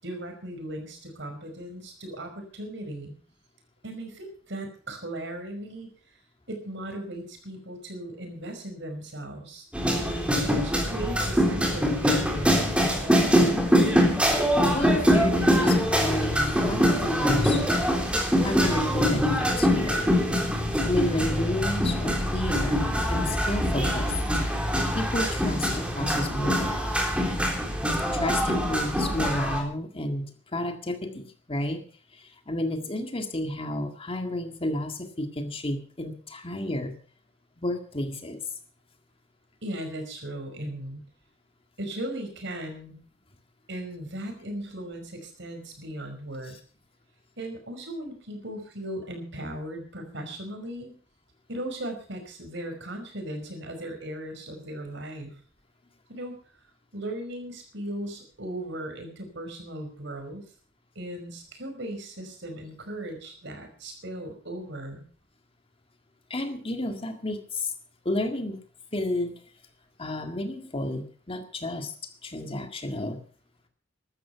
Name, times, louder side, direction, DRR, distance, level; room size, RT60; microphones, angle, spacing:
voice 1, 0.0-3.1 3.8-5.9 6.5-13.6 39.6-41.0 41.8-43.0 43.7-46.6 47.4-50.9 51.5-55.4 56.1-56.4 56.9-60.5 61.0-65.0, right 1 dB, 65° right, 5 dB, 5.3 m, -37 dB
sound 1, 9.7-29.6, equal, 5° right, 3.5 m, -24 dB
voice 2, 14.7-17.6 18.4-20.1 20.8-24.1 24.9-26.8 28.1-31.8 32.1-36.9 37.6-38.4 66.3-67.7 68.1-68.6 68.9-69.3 70.0-73.2, left 1 dB, 30° left, 6 dB, 1.9 m, -31 dB
15.0 x 12.5 x 5.7 m, 0.43 s
head